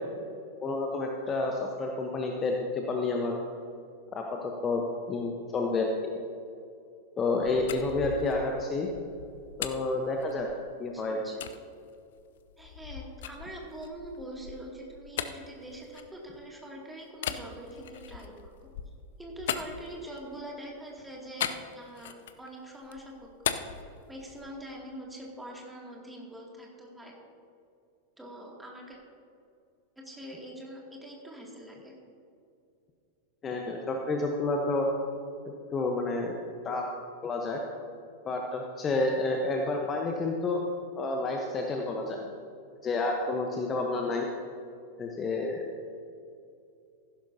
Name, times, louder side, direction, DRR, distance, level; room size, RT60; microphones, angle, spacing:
voice 1, 0.6-3.4 4.1-6.1 7.2-8.9 9.6-10.5 10.8-11.2 33.4-34.9 35.7-36.3 36.6-36.9 37.2-37.6 38.2-40.6 41.0-42.2 42.8-44.3 45.0-45.6, left 3 dB, 25° left, 1 dB, 1.0 m, -29 dB
sound 1, 7.2-10.8 11.4-11.6 12.1-16.6 17.1-20.4 21.4-22.5 22.8-24.6, left 9 dB, 60° left, 0.6 m, -39 dB
voice 2, 10.9-11.4 12.6-18.5 19.2-23.6 24.1-27.1 28.2-29.0 30.0-31.9 37.8-37.9, right 1 dB, 5° right, -2 dB, 2.5 m, -44 dB
15.0 x 12.0 x 2.8 m, 2.5 s
figure-of-eight pair, 90°, 0 cm